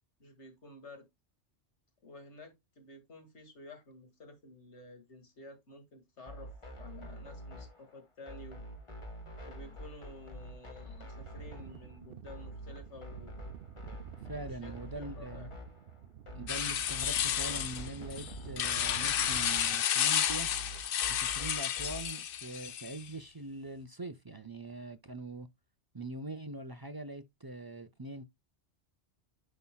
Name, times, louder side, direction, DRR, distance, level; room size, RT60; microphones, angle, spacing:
voice 1, 0.2-1.1 2.0-6.5 6.8-8.6 9.4-13.4 14.3-15.5, left 2 dB, 80° left, 2.4 m, -52 dB
sound 1, 6.3-22.2, equal, 30° left, 1.2 m, -47 dB
sound 2, 11.1-19.8, right 9 dB, 60° right, 0.7 m, -50 dB
voice 2, 14.3-15.5 16.3-20.5 21.1-25.5 25.9-28.2, right 2 dB, 35° right, 0.4 m, -43 dB
sound 3, 16.5-23.1, left 9 dB, 60° left, 0.7 m, -31 dB
9.5 x 5.7 x 2.3 m
omnidirectional pair, 1.2 m